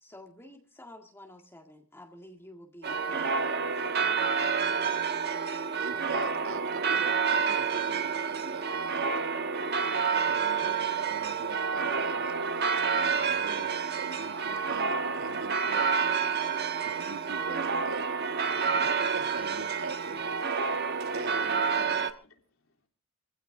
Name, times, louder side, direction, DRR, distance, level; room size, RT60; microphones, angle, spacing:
voice 1, 0.0-3.5 3.8-4.2, left 1 dB, 10° left, 1.8 m, -50 dB
sound 1, 2.8-22.1, right 5 dB, 50° right, 1.3 m, -29 dB
voice 2, 4.6-5.0 20.6-20.8 21.9-22.9, left 2 dB, 85° left, 3.2 m, -55 dB
voice 3, 5.5-9.2 9.8-18.1 18.5-20.2 21.1-21.7, right 3 dB, 85° right, 1.6 m, -43 dB
25.5 x 15.5 x 2.6 m
head